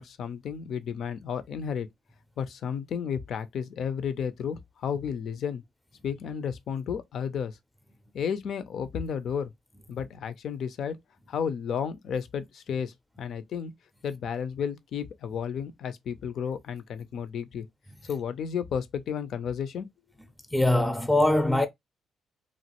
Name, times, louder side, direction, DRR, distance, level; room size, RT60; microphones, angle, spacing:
voice 1, 0.0-1.9 2.4-5.6 6.0-7.6 8.1-9.5 9.9-11.0 11.3-13.7 14.0-17.7 18.0-19.9, left 7 dB, 65° left, 0.5 m, -32 dB
voice 2, 20.5-21.7, left 1 dB, 5° left, 0.5 m, -22 dB
3.0 x 2.4 x 2.8 m
cardioid pair, 90°, 0 cm